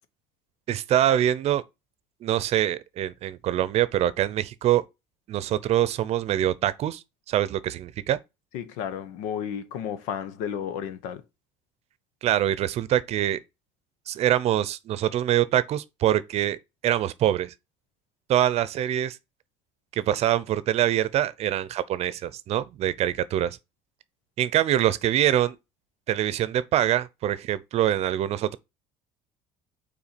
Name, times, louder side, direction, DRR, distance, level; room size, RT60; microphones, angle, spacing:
voice 1, 0.7-1.6 2.2-4.8 5.3-8.2 12.2-13.4 14.1-16.6 16.8-17.5 18.3-19.2 19.9-23.6 24.4-25.6 26.1-28.6, right 12 dB, 55° right, 0.7 m, -24 dB
voice 2, 8.5-11.2, left 8 dB, 85° left, 0.9 m, -32 dB
5.8 x 4.3 x 4.3 m
cardioid pair, 110°, 13 cm